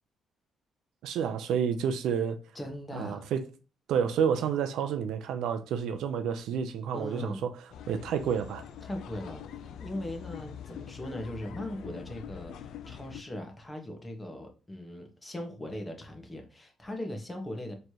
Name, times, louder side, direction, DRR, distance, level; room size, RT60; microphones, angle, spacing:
voice 1, 1.0-2.4 2.9-3.5 3.9-7.5 7.9-8.7, right 7 dB, 85° right, 0.4 m, -29 dB
voice 2, 2.5-3.2 6.9-7.4 8.8-9.4 9.8-17.7, left 1 dB, 15° left, 1.2 m, -39 dB
sound 1, 7.7-13.2, left 9 dB, 75° left, 0.3 m, -44 dB
4.2 x 3.2 x 2.8 m
cardioid pair, 90°, 0 cm